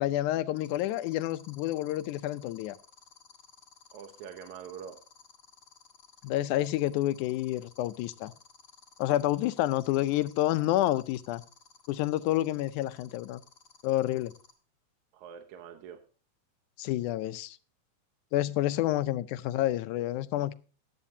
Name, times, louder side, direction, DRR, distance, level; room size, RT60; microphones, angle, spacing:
voice 1, 0.0-2.8 6.2-8.3 9.0-11.4 11.9-13.4 13.8-14.3 16.8-17.6 18.3-20.5, left 14 dB, 90° left, 2.1 m, -29 dB
sound 1, 0.6-14.5, left 6 dB, 35° left, 2.1 m, -55 dB
voice 2, 3.9-5.0 15.1-16.0, right 8 dB, 75° right, 2.4 m, -44 dB
14.5 x 11.0 x 2.7 m
omnidirectional pair, 3.4 m